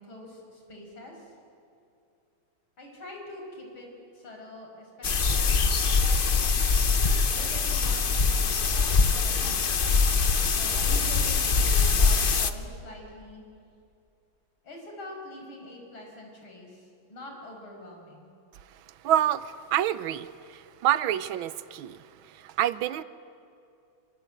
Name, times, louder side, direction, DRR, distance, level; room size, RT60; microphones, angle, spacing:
voice 1, 0.0-1.3 2.8-3.9 4.1-6.4 7.3-13.7 14.6-18.3, left 1 dB, 80° left, 1 dB, 6.3 m, -45 dB
sound 1, 5.0-12.5, left 5 dB, 45° left, 0.7 m, -23 dB
voice 2, 19.0-23.0, right 12 dB, 80° right, 15 dB, 1.6 m, -28 dB
25.5 x 25.0 x 9.1 m, 2.5 s
omnidirectional pair, 2.2 m